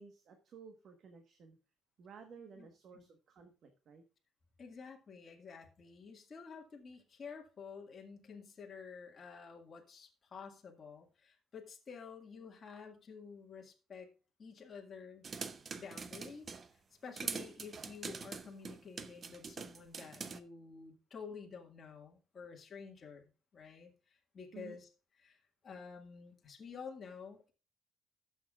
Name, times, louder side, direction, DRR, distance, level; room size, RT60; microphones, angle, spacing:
voice 1, 0.0-1.6 2.0-4.0 24.5-24.8, right 6 dB, 50° right, 6 dB, 1.3 m, -55 dB
voice 2, 2.6-3.0 4.6-14.1 14.4-15.2 15.7-16.6 17.0-24.9 25.2-25.4 25.6-27.5, left 5 dB, 30° left, 0 dB, 1.9 m, -50 dB
sound 1, 15.2-16.7 17.2-20.4, right 5 dB, 30° right, 0.7 m, -43 dB
17.5 x 7.1 x 2.4 m, 0.33 s
cardioid pair, 160°, 0 cm